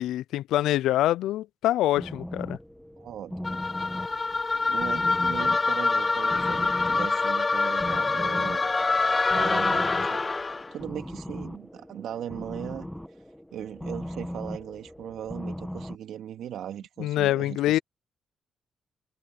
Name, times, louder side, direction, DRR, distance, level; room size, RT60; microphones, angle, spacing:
voice 1, 0.0-2.6 17.0-17.8, left 14 dB, 85° left, 0.4 m, -25 dB
sound 1, 2.0-16.0, equal, 5° left, 1.6 m, -39 dB
voice 2, 3.0-3.6 4.7-8.7 9.3-10.3 10.7-12.9 13.5-17.8, right 10 dB, 75° right, 2.3 m, -38 dB
sound 2, 3.4-10.7, left 3 dB, 25° left, 0.6 m, -25 dB
cardioid pair, 90°, 0 cm